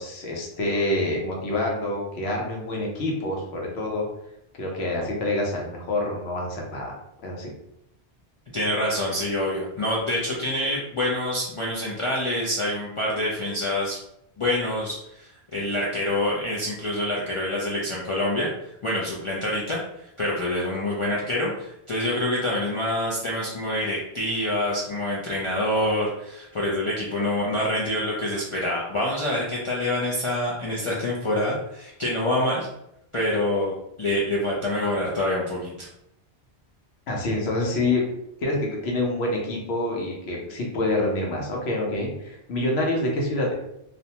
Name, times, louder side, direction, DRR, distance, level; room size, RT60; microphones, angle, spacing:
voice 1, 0.0-4.1 4.6-6.9 7.2-7.5 37.1-38.1 38.4-43.5, left 2 dB, 80° left, -1 dB, 1.0 m, -27 dB
voice 2, 8.5-14.0 14.4-18.5 18.8-19.8 20.2-32.7 33.1-33.7 34.0-35.9, left 1 dB, 60° left, -5 dB, 0.3 m, -26 dB
2.5 x 2.1 x 2.8 m, 0.81 s
omnidirectional pair, 1.1 m